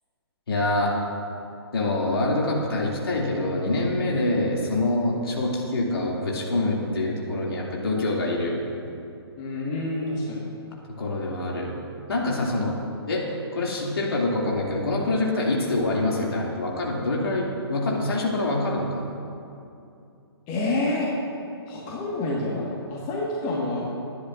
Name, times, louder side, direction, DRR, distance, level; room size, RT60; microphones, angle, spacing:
voice 1, 0.5-1.0 1.7-8.6 11.0-11.7 12.1-12.8 13.1-13.2 13.5-19.1, left 2 dB, 60° left, -3 dB, 2.7 m, -25 dB
voice 2, 9.4-10.5 20.5-21.1 21.7-23.8, left 2 dB, 25° left, -4 dB, 1.7 m, -28 dB
21.5 x 10.0 x 2.6 m, 2.7 s
figure-of-eight pair, 125°, 14 cm